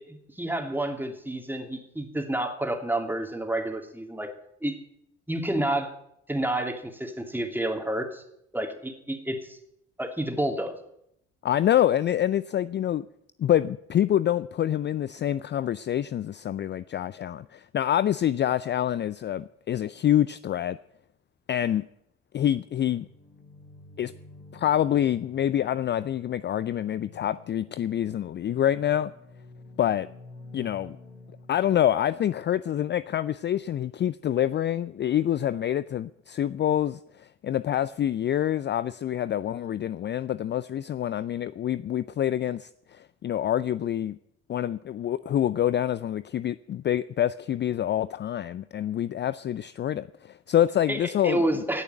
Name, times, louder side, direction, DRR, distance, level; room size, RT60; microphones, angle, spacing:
voice 1, 0.0-4.3 4.6-4.8 5.3-5.9 6.3-8.2 8.5-9.6 10.0-10.7 50.9-51.8, right 1 dB, 5° right, 3.0 m, -29 dB
voice 2, 11.4-13.1 13.4-20.8 21.5-21.8 22.3-23.1 24.0-24.1 24.5-29.1 29.8-30.1 30.5-31.0 31.5-44.2 44.5-51.6, left 11 dB, 35° left, 0.4 m, -26 dB
sound 1, 22.8-31.9, left 3 dB, 65° left, 3.8 m, -50 dB
17.5 x 7.0 x 9.2 m
hypercardioid pair, 45°, 31 cm